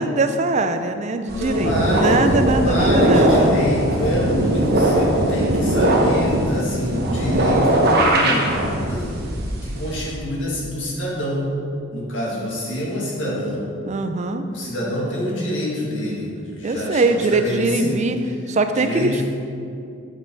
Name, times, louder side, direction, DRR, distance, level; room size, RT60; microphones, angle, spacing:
voice 1, 0.0-3.6 13.9-14.4 16.6-18.2 18.5-19.2, right 3 dB, 35° right, 8 dB, 0.4 m, -21 dB
voice 2, 1.3-11.5 11.9-13.6 14.5-18.0 18.7-19.2, equal, 60° left, -5 dB, 2.0 m, -26 dB
sound 1, 1.3-10.1, right 1 dB, 50° right, 1.0 m, -20 dB
8.2 x 5.5 x 4.5 m, 2.5 s
head